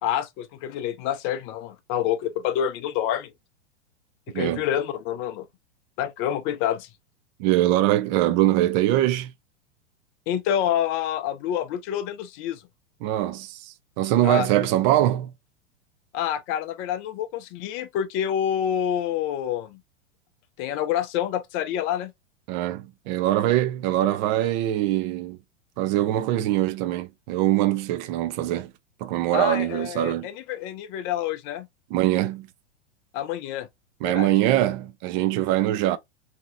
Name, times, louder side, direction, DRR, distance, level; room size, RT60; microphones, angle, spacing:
voice 1, 0.0-3.3 4.3-5.5 6.0-6.9 10.3-12.6 14.2-14.5 16.1-19.8 20.6-22.1 29.3-31.7 33.1-33.7 34.0-34.3, left 10 dB, 35° left, 0.6 m, -27 dB
voice 2, 7.4-9.3 13.0-15.3 22.5-25.4 25.8-28.7 29.0-30.3 31.9-32.5 34.0-36.0, right 14 dB, 40° right, 0.5 m, -23 dB
2.9 x 2.8 x 2.5 m
figure-of-eight pair, 95°, 35 cm